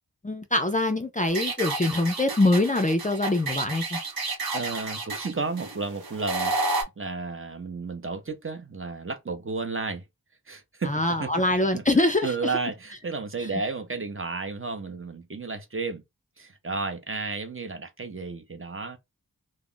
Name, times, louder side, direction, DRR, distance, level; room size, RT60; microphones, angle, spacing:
voice 1, 0.2-4.0 10.8-12.5, left 2 dB, 20° left, 0.4 m, -24 dB
sound 1, 1.3-6.8, right 3 dB, 75° right, 0.8 m, -31 dB
voice 2, 4.5-10.0 10.5-11.3 11.7-11.8 12.2-16.0 16.4-19.0, right 4 dB, 35° right, 0.6 m, -32 dB
2.3 x 2.0 x 3.7 m
wide cardioid pair, 45°, 36 cm